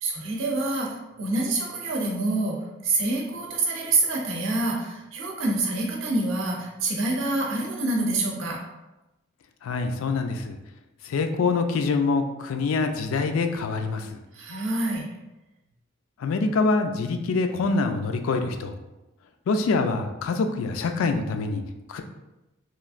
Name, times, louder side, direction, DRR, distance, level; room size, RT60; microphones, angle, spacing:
voice 1, 0.0-2.6 2.8-8.6 14.3-15.0, right 2 dB, 70° right, -1 dB, 0.6 m, -26 dB
voice 2, 9.6-10.6 11.0-14.2 16.2-18.7 19.5-21.6 21.9-22.0, left 4 dB, 85° left, 6 dB, 0.3 m, -25 dB
3.0 x 2.5 x 2.4 m, 1.0 s
head